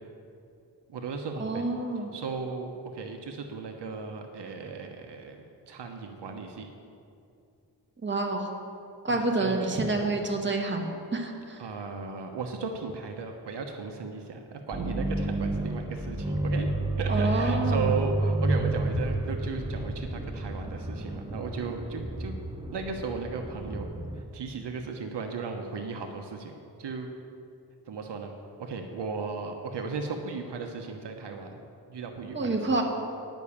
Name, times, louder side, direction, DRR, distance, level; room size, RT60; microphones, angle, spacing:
voice 1, 0.9-1.6 2.1-6.7 9.1-9.5 11.6-16.7 17.0-22.3 22.7-23.9 24.3-26.5 26.8-27.1 27.9-28.3 28.6-31.6 31.9-32.8, right 4 dB, 70° right, 4 dB, 1.1 m, -36 dB
voice 2, 1.4-2.1 8.0-8.5 9.0-11.6 17.1-17.9 32.3-32.8, right 2 dB, 25° right, 1 dB, 1.4 m, -28 dB
sound 1, 14.7-24.2, right 2 dB, 10° right, 0.6 m, -30 dB
10.5 x 6.2 x 8.5 m, 2.5 s
wide cardioid pair, 100°, 42 cm